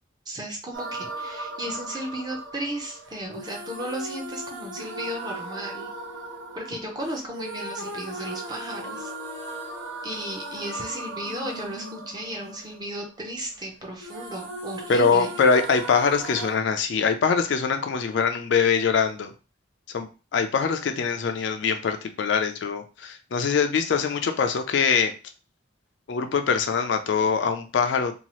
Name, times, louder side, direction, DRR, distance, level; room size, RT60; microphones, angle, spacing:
voice 1, 0.3-5.9 6.5-9.1 10.0-15.4, right 1 dB, 20° right, 0 dB, 0.6 m, -35 dB
sound 1, 0.7-13.7 14.0-16.6, right 2 dB, 80° right, 0.9 m, -37 dB
voice 2, 14.9-19.3 19.9-25.1 26.1-28.1, left 5 dB, 60° left, 6 dB, 0.4 m, -23 dB
2.8 x 2.3 x 3.0 m, 0.33 s
head